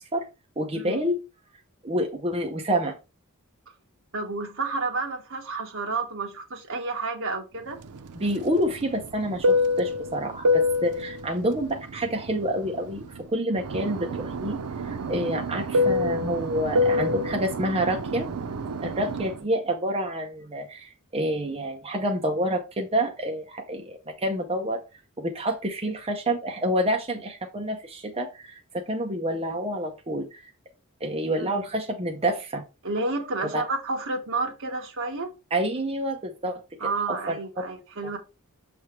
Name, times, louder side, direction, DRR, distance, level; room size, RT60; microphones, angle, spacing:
voice 1, 0.6-1.2 1.8-2.9 8.2-13.0 13.3-14.6 14.8-18.3 18.8-24.8 25.2-30.4 31.0-32.6 33.5-33.6 35.5-36.6 37.0-37.4, right 1 dB, 25° right, 0.8 m, -28 dB
voice 2, 4.1-7.8 15.0-15.2 31.4-31.6 32.8-35.3 36.8-38.2, right 3 dB, 60° right, 1.5 m, -30 dB
Fixed-wing aircraft airplane, 7.8-13.2 13.5-19.4, left 2 dB, 90° right, 0.6 m, -27 dB
7.0 x 3.4 x 4.5 m
head